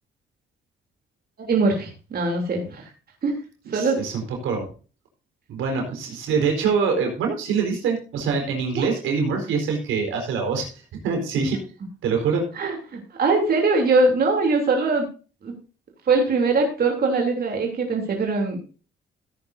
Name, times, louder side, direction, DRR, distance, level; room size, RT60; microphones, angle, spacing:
voice 1, 1.4-2.9 3.2-3.4 3.7-4.0 8.7-8.9 12.5-15.1 15.4-15.5 16.1-18.8, right 3 dB, 50° right, 2 dB, 3.1 m, -22 dB
voice 2, 3.7-4.7 5.5-11.6 12.0-12.4, right 5 dB, 85° right, 2 dB, 4.4 m, -24 dB
16.0 x 9.7 x 2.7 m, 0.36 s
cardioid pair, 90°, 20 cm